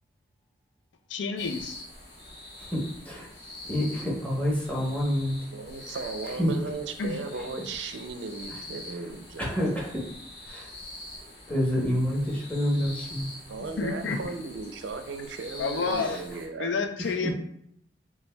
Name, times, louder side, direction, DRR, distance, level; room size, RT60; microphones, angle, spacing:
voice 1, 1.1-1.8 7.0-7.2 13.8-14.2 15.6-16.2 16.6-17.3, left 4 dB, 90° left, 6 dB, 0.4 m, -29 dB
sound 1, 1.4-16.5, left 1 dB, 65° left, 1.4 m, -44 dB
voice 2, 2.6-3.3 3.6-5.4 5.8-6.5 8.5-8.6 8.9-9.1 9.4-10.0 10.4-10.7 11.5-13.3 14.1-14.2 15.9-16.2 17.0-17.3, equal, 10° left, -4 dB, 1.0 m, -29 dB
voice 3, 5.5-9.4 13.5-16.7, right 4 dB, 85° right, 7 dB, 0.5 m, -36 dB
6.7 x 2.2 x 2.2 m, 0.71 s
head